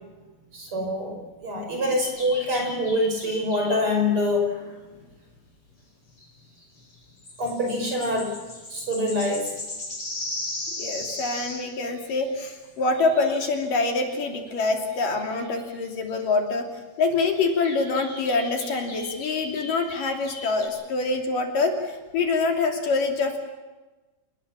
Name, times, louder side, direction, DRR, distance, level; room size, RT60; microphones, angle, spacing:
voice 1, 0.5-4.8 7.4-8.4 8.7-9.5, left 1 dB, 35° right, 3 dB, 6.0 m, -25 dB
sound 1, 2.0-3.9 6.2-6.3 6.6-6.7 6.9-12.3 12.9-13.5 13.9-14.2 14.6-14.7 14.9-15.8 16.1-16.2 17.3-20.7, left 2 dB, 40° left, 7.5 m, -38 dB
voice 2, 10.8-16.7 17.0-23.4, left 3 dB, 65° left, 3 dB, 4.3 m, -25 dB
28.0 x 20.5 x 7.4 m, 1.2 s
omnidirectional pair, 4.3 m